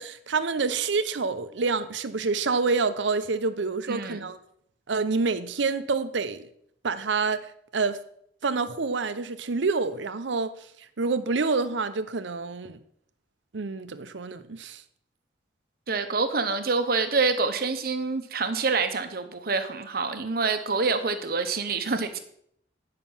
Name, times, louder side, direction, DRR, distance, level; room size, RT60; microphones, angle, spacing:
voice 1, 0.0-4.4 4.9-6.5 6.8-8.0 8.4-10.6 11.0-12.8 13.5-14.8, right 4 dB, 75° right, 0.7 m, -27 dB
voice 2, 3.9-4.3 15.9-22.2, right 4 dB, 50° right, 0.9 m, -26 dB
9.2 x 5.8 x 5.5 m
head